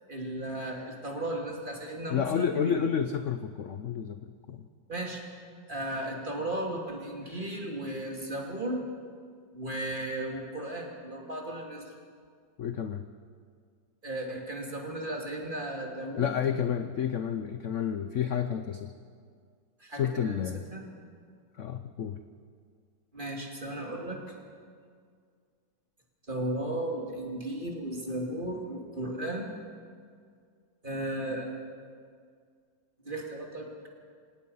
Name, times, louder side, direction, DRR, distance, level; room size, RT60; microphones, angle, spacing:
voice 1, 0.1-2.9 4.9-5.2 5.7-8.8 9.5-11.8 14.0-16.3 19.8-20.8 23.1-24.4 26.3-29.5 30.8-31.5 33.0-33.9, right 1 dB, 25° right, 0 dB, 2.9 m, -35 dB
voice 2, 2.1-4.2 4.5-4.6 12.6-13.0 16.2-18.9 19.9-20.6 21.6-22.2, left 8 dB, 60° left, 9 dB, 0.8 m, -30 dB
26.0 x 18.0 x 5.6 m, 2.1 s
omnidirectional pair, 2.0 m